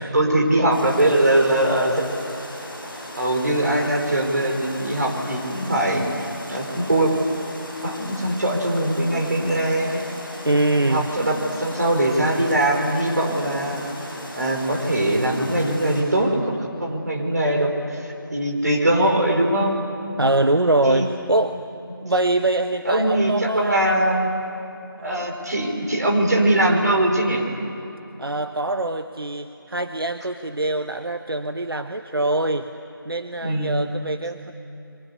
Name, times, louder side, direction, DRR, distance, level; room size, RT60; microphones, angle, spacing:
voice 1, 0.0-2.0 3.2-7.1 7.8-10.0 10.9-14.0 14.3-19.8 20.8-21.0 22.8-24.4 25.0-27.5 33.4-33.8, right 1 dB, 45° right, 1 dB, 4.8 m, -21 dB
sound 1, 0.7-16.0, left 1 dB, ahead, 6.7 m, -37 dB
voice 2, 10.4-11.1 20.2-21.6 22.0-23.9 25.0-25.3 28.2-32.7 33.0-34.5, right 2 dB, 75° right, 7 dB, 1.2 m, -23 dB
29.5 x 24.0 x 8.3 m, 3.0 s
figure-of-eight pair, 170°, 12 cm